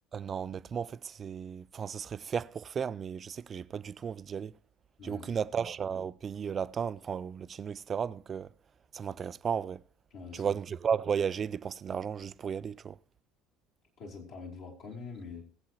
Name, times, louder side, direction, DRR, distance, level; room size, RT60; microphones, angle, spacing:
voice 1, 0.1-4.6 5.0-8.5 8.9-9.8 10.3-13.0, right 7 dB, 35° right, 0.4 m, -34 dB
voice 2, 5.0-5.3 10.1-10.5 14.0-15.4, left 4 dB, 55° left, 3.2 m, -44 dB
20.5 x 7.9 x 2.9 m
figure-of-eight pair, 60°, 0 cm